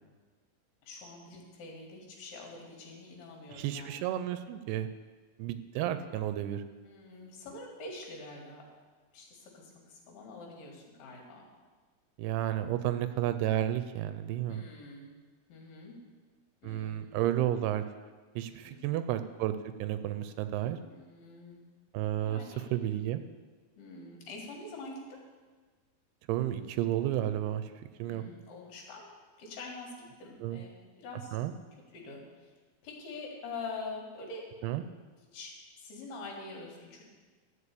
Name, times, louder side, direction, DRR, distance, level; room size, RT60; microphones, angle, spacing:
voice 1, 0.8-4.1 6.8-8.6 9.1-11.4 14.5-15.1 15.5-16.0 16.6-17.1 18.7-19.0 20.8-21.6 22.2-22.7 23.8-25.2 28.0-29.1 29.4-29.9 30.2-31.4 31.9-32.2 32.8-34.4 35.3-37.0, left 3 dB, 75° left, 0 dB, 3.8 m, -45 dB
voice 2, 3.5-4.9 5.4-6.6 12.2-14.6 16.6-17.8 18.4-20.8 21.9-22.4 22.7-23.2 26.3-27.7 28.0-28.2 30.4-30.6 31.3-31.5 34.6-34.8, right 12 dB, 85° right, 10 dB, 2.6 m, -32 dB
13.5 x 5.0 x 8.3 m, 1.4 s
omnidirectional pair, 4.6 m